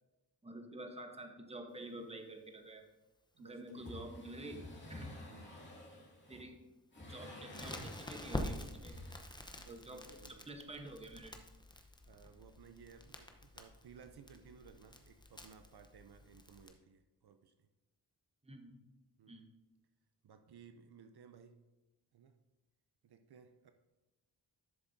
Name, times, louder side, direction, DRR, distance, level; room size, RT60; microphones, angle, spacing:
voice 1, 0.4-2.8 3.4-5.1 6.3-6.7 7.0-9.1 9.7-11.5 18.4-18.8 19.3-19.4, right 1 dB, 15° right, 5 dB, 0.9 m, -49 dB
voice 2, 3.3-3.9 5.3-5.6 9.5-10.5 12.1-17.7 19.2-19.5 20.2-21.6 22.1-22.4 23.0-23.7, right 6 dB, 65° right, 8 dB, 0.6 m, -59 dB
sound 1, 3.7-6.4 6.9-8.5 8.8-9.2, left 1 dB, 25° left, 2.1 m, -50 dB
Crackle, 7.5-16.7, left 1 dB, 10° left, 0.7 m, -47 dB
12.0 x 7.0 x 2.6 m, 1.1 s
wide cardioid pair, 115°, 42 cm